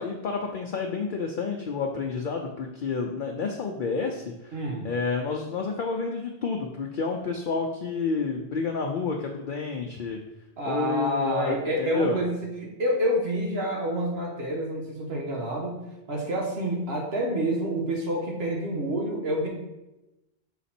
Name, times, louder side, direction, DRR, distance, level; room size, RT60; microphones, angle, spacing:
voice 1, 0.0-4.6 4.8-10.2 10.7-12.2, left 4 dB, 60° left, 1 dB, 0.7 m, -29 dB
voice 2, 4.5-4.9 10.6-12.4 12.8-15.8 16.1-19.5, right 1 dB, 80° right, -1 dB, 1.4 m, -28 dB
5.9 x 4.0 x 4.3 m, 0.95 s
omnidirectional pair, 1.0 m